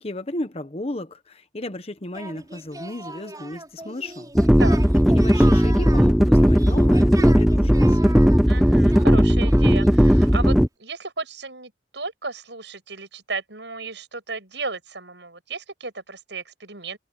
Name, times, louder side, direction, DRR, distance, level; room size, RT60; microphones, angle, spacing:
voice 1, 0.0-4.3 5.1-8.2, left 1 dB, 35° left, 1.1 m, -34 dB
Singing, 2.1-10.5, right 2 dB, 20° right, 6.9 m, -39 dB
sound 1, 4.3-10.7, equal, ahead, 0.5 m, -16 dB
voice 2, 8.5-17.0, right 3 dB, 70° right, 7.6 m, -34 dB
head